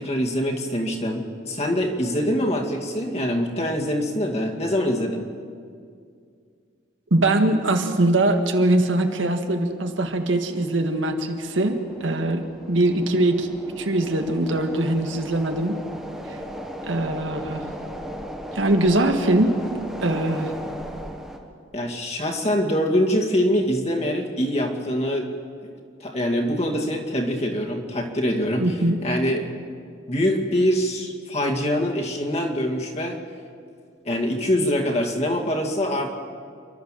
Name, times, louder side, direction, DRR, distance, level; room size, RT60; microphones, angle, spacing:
voice 1, 0.0-5.3 21.7-25.3 25.6-25.7 26.0-29.5 30.1-33.2 34.0-36.1, equal, 35° left, 0 dB, 2.2 m, -24 dB
voice 2, 7.1-13.5 13.8-15.8 16.8-17.7 18.5-19.5 20.0-20.5 28.6-29.0, right 1 dB, 85° right, 5 dB, 1.8 m, -22 dB
sound 1, 9.9-21.4, equal, 5° right, 1.7 m, -37 dB
28.5 x 12.0 x 7.5 m, 2.3 s
head